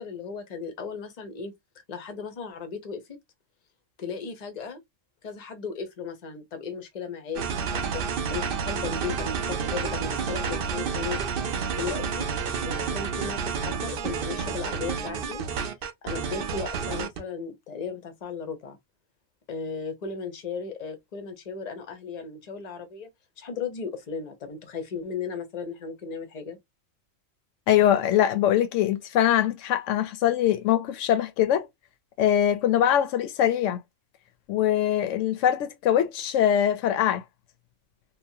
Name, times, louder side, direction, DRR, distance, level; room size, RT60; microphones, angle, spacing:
voice 1, 0.0-1.5 1.9-3.2 4.0-4.8 5.2-12.3 12.6-15.4 16.0-18.8 19.5-23.1 23.4-26.6, left 5 dB, 40° left, 0.6 m, -36 dB
sound 1, 7.4-17.2, right 6 dB, 60° right, 0.6 m, -30 dB
voice 2, 27.7-31.7 32.2-33.8 34.5-37.2, left 10 dB, 70° left, 0.9 m, -22 dB
2.9 x 2.1 x 2.6 m
omnidirectional pair, 1.4 m